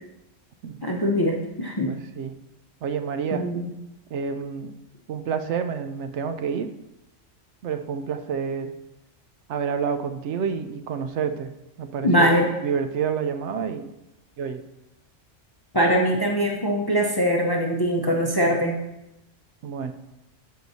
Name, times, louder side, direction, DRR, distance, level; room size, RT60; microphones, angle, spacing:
voice 1, 0.8-1.9 3.3-3.7 12.0-12.5 15.7-18.8, equal, 25° left, 0 dB, 0.6 m, -22 dB
voice 2, 1.9-2.4 2.8-3.5 4.1-4.7 5.1-6.7 7.6-8.7 9.5-11.5 11.8-13.9 14.4-14.6 19.6-19.9, right 6 dB, 70° right, 8 dB, 0.8 m, -29 dB
13.0 x 4.6 x 2.7 m, 0.90 s
omnidirectional pair, 1.3 m